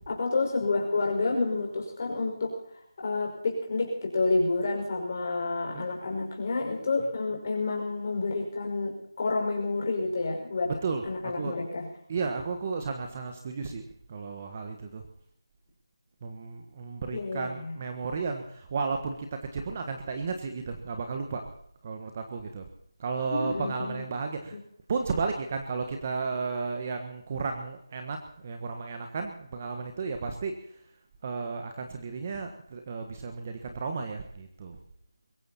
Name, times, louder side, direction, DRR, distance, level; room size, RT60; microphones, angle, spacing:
voice 1, 0.1-2.5 3.0-10.7 11.0-11.9 17.1-17.7 23.3-24.0 24.5-24.6, left 3 dB, 30° left, 0 dB, 5.4 m, -29 dB
voice 2, 10.8-11.6 12.1-15.0 16.2-21.5 21.8-22.7 23.0-24.6 24.9-30.8 31.2-34.8, right 4 dB, 25° right, 5 dB, 1.4 m, -33 dB
23.0 x 14.5 x 4.3 m, 0.68 s
figure-of-eight pair, 175°, 2 cm